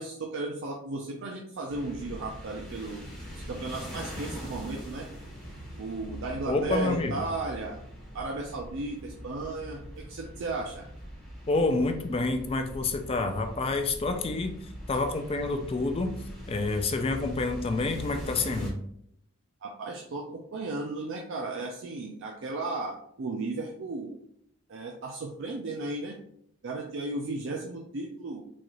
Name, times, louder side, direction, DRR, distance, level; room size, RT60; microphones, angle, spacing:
voice 1, 0.0-3.0 3.5-5.1 5.8-7.8 8.1-10.9 19.6-24.2 24.7-26.2 26.6-28.4, right 3 dB, 60° right, 1 dB, 0.4 m, -35 dB
sound 1, 1.7-18.7, equal, ahead, 1.2 m, -42 dB
voice 2, 6.4-7.2 11.5-16.1 16.5-18.7, left 3 dB, 25° left, 6 dB, 0.3 m, -28 dB
4.0 x 2.4 x 3.0 m, 0.69 s
head